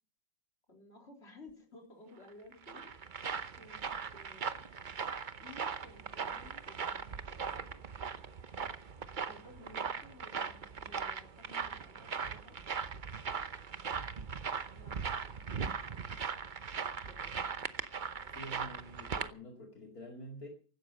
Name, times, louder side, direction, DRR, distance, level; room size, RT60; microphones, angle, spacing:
voice 1, 0.7-3.2 3.6-3.8 4.1-4.7 5.4-7.8 9.2-12.6 14.7-15.1 15.5-16.0 17.1-17.6, left 2 dB, 35° left, 2 dB, 4.0 m, -56 dB
sound 1, 2.3-19.3, right 6 dB, 50° right, 0.5 m, -39 dB
voice 2, 18.3-20.5, equal, 50° left, 1 dB, 2.9 m, -47 dB
16.0 x 12.5 x 5.5 m, 0.40 s
omnidirectional pair, 2.0 m